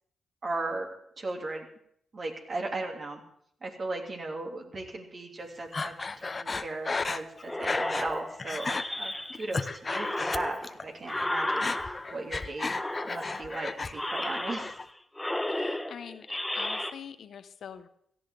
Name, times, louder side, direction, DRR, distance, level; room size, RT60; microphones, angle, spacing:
voice 1, 0.4-1.7 2.1-3.2 3.6-12.7 13.0-14.8, right 2 dB, 50° right, 1 dB, 3.1 m, -37 dB
Breathing, 5.7-8.1 8.4-8.8 9.3-10.8 11.1-13.9 14.2-14.8, left 4 dB, 40° left, 0.7 m, -34 dB
sound 1, 7.4-9.5 9.9-12.3 12.6-13.5 13.9-14.9 15.1-16.9, left 1 dB, 10° left, 1.1 m, -33 dB
voice 2, 15.5-17.9, left 8 dB, 70° left, 11 dB, 0.8 m, -45 dB
17.0 x 14.0 x 3.8 m, 0.69 s
supercardioid pair, 50°, 0 cm